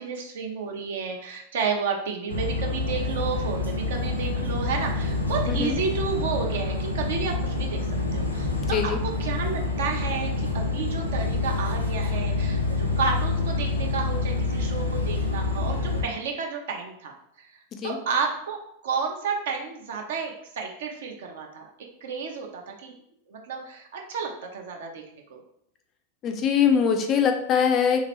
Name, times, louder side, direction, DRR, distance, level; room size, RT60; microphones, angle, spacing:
voice 1, 0.0-7.9 8.1-17.5 17.8-21.7 22.0-22.9 23.3-25.4, right 5 dB, 60° right, 2 dB, 0.6 m, -31 dB
sound 1, 2.3-16.0, left 3 dB, 85° left, 0.6 m, -27 dB
voice 2, 26.2-28.0, left 7 dB, 30° left, 5 dB, 0.4 m, -22 dB
3.1 x 2.9 x 2.9 m, 0.72 s
figure-of-eight pair, 90°, 0 cm